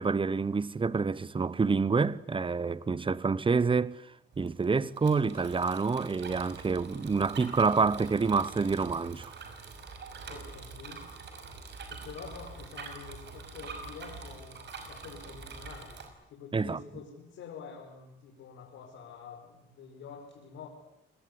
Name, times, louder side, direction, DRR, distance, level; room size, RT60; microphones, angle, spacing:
voice 1, 0.0-4.0 4.4-9.3 16.5-16.8, right 4 dB, 25° right, 1.1 m, -27 dB
Bicycle, 4.3-16.1, right 4 dB, 60° right, 6.0 m, -45 dB
voice 2, 10.3-11.1 11.9-14.6 14.8-16.0 16.3-20.7, left 6 dB, 85° left, 5.4 m, -47 dB
27.5 x 20.0 x 9.9 m
cardioid pair, 90°, 20 cm